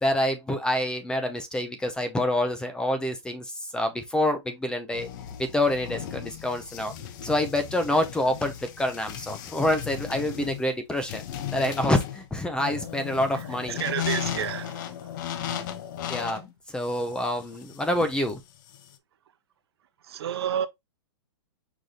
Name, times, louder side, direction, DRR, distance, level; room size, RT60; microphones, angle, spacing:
voice 1, 0.0-5.1 5.4-6.9 7.2-11.2 11.5-13.8 16.1-18.4, left 1 dB, 5° left, 0.5 m, -27 dB
sound 1, 4.9-18.9, left 10 dB, 45° left, 0.7 m, -36 dB
voice 2, 13.7-14.8 20.1-20.7, right 9 dB, 65° right, 0.7 m, -29 dB
4.9 x 2.6 x 3.9 m
hypercardioid pair, 150°, 14 cm